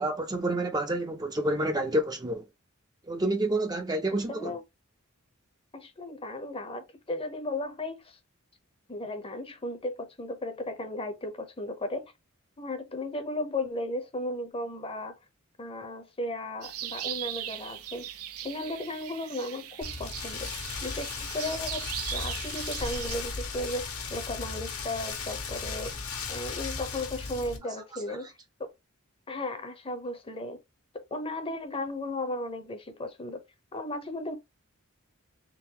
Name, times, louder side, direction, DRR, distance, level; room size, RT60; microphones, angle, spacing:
voice 1, 0.0-2.4 3.1-4.5, right 1 dB, 20° right, 0.5 m, -28 dB
voice 2, 4.3-4.6 5.7-8.2 8.9-12.1 12.6-15.1 15.6-18.1 18.4-20.5 20.8-25.9 26.3-28.3 28.6-28.7 29.3-30.6 30.9-33.4 33.7-34.3, left 1 dB, 25° left, 0.7 m, -35 dB
sound 1, 16.6-23.2, right 12 dB, 90° right, 0.6 m, -39 dB
Rain, 19.8-27.6, left 5 dB, 75° left, 1.3 m, -36 dB
3.8 x 3.5 x 2.9 m
head